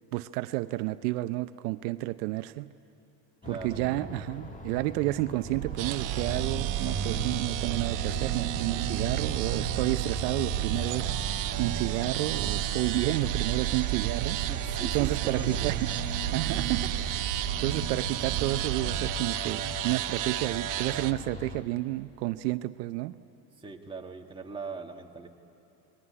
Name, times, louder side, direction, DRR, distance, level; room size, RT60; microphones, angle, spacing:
voice 1, 0.1-2.7 3.5-11.2 11.6-14.4 14.9-15.8 16.3-17.2 17.6-23.1, right 18 dB, 75° right, 11 dB, 0.8 m, -31 dB
sound 1, 3.4-21.6, left 2 dB, 15° left, 1.7 m, -40 dB
voice 2, 3.4-4.2 14.3-15.8 23.6-25.3, right 4 dB, 10° right, 0 dB, 2.0 m, -41 dB
sound 2, 5.4-19.1, right 12 dB, 90° right, 1.6 m, -33 dB
sound 3, 5.8-21.1, right 14 dB, 40° right, 1.0 m, -35 dB
28.0 x 21.5 x 9.9 m, 2.8 s
supercardioid pair, 130°, 48 cm